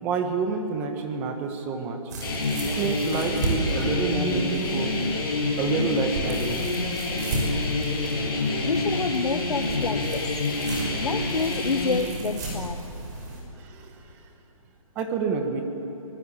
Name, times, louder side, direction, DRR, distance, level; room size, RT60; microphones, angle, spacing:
voice 1, 0.0-2.0 2.6-4.9 5.6-6.6 13.6-14.2 14.9-15.6, right 5 dB, 10° right, 5 dB, 1.3 m, -28 dB
sound 1, 2.1-13.4, right 2 dB, 30° right, 5.9 m, -34 dB
sound 2, 2.2-12.0, left 2 dB, 40° left, 7.9 m, -27 dB
voice 2, 8.6-10.2 11.0-12.8, left 4 dB, 90° left, 7 dB, 1.2 m, -28 dB
25.0 x 20.5 x 8.5 m, 3.0 s
hypercardioid pair, 170°, 19 cm